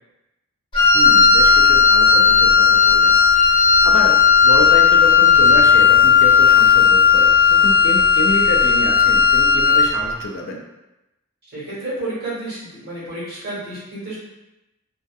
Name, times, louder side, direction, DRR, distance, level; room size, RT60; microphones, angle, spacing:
Wind instrument woodwind instrument, 0.7-10.0, left 6 dB, 25° left, 0.8 m, -13 dB
voice 1, 0.9-4.2 4.4-10.6, left 2 dB, 65° left, 2 dB, 0.4 m, -28 dB
voice 2, 11.5-14.2, right 2 dB, 50° right, -9 dB, 1.3 m, -30 dB
2.6 x 2.2 x 2.3 m, 0.96 s
head